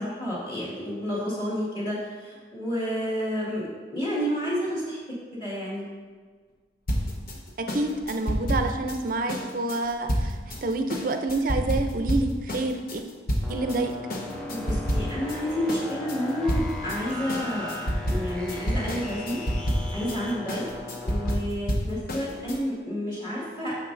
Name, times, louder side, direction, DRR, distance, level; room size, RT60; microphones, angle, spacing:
voice 1, 0.0-5.0 5.3-5.8 14.5-17.7 18.0-19.4 19.9-20.7 21.0-23.8, equal, 30° left, -7 dB, 1.8 m, -30 dB
sound 1, 6.9-13.8 14.1-15.4 15.7-22.6, equal, 55° left, 0.9 m, -29 dB
voice 2, 7.7-13.0 13.5-13.9, right 2 dB, 50° right, 6 dB, 0.5 m, -28 dB
sound 2, 13.4-21.4, left 2 dB, 5° left, 0.8 m, -38 dB
9.3 x 6.4 x 2.6 m, 1.5 s
head